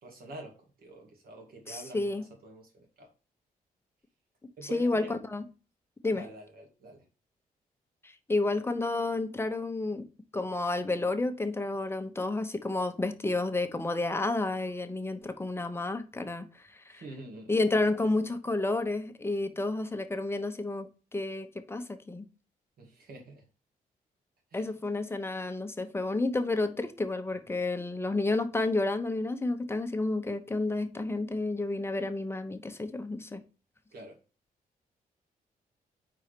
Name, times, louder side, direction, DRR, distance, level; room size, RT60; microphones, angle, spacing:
voice 1, 0.0-3.1 4.6-5.1 6.1-7.1 16.9-18.3 22.8-23.5 24.5-24.7 33.9-34.2, right 2 dB, 75° right, 2.2 m, -47 dB
voice 2, 1.7-2.2 4.7-5.4 6.0-6.2 8.0-10.1 10.3-17.0 17.5-22.3 24.5-33.4, left 2 dB, 15° left, 0.9 m, -31 dB
4.6 x 4.2 x 5.0 m
cardioid pair, 90°, 16 cm